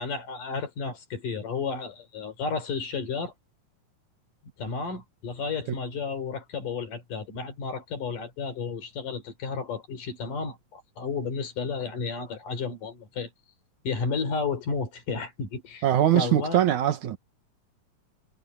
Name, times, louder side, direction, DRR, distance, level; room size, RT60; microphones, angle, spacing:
voice 1, 0.0-3.3 4.6-13.3 13.8-15.9 16.1-16.6, left 5 dB, 70° left, 5.1 m, -32 dB
voice 2, 15.8-17.2, right 11 dB, 65° right, 2.6 m, -22 dB
omnidirectional pair, 3.8 m